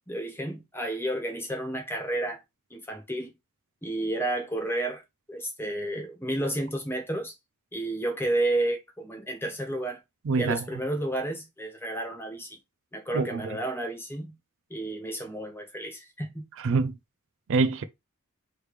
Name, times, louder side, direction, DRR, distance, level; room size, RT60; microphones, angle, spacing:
voice 1, 0.1-2.4 2.7-3.3 3.8-5.0 5.3-7.3 7.7-10.0 10.4-12.6 12.9-14.3 14.7-16.5, right 1 dB, 10° left, 1.1 m, -31 dB
voice 2, 10.3-10.6 13.1-13.6 16.6-16.9 17.5-17.8, right 4 dB, 60° right, 0.4 m, -25 dB
3.2 x 3.2 x 4.8 m
head